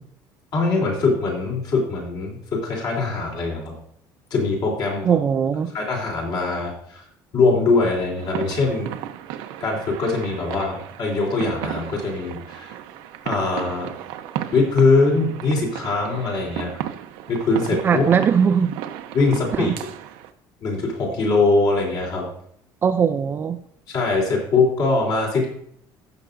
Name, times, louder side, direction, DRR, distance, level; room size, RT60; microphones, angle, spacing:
voice 1, 0.5-3.8 4.3-5.2 5.7-7.0 7.3-8.9 9.6-12.7 13.2-13.9 14.5-16.7 17.3-18.0 19.1-19.7 20.6-22.3 23.9-25.5, left 3 dB, 50° left, 3.5 m, -22 dB
voice 2, 5.0-5.7 17.8-18.8 19.5-19.8 22.8-23.6, right 7 dB, 25° right, 0.4 m, -20 dB
sound 1, 8.2-20.3, right 12 dB, 85° right, 0.8 m, -34 dB
16.0 x 6.8 x 2.6 m
cardioid pair, 170°, 9 cm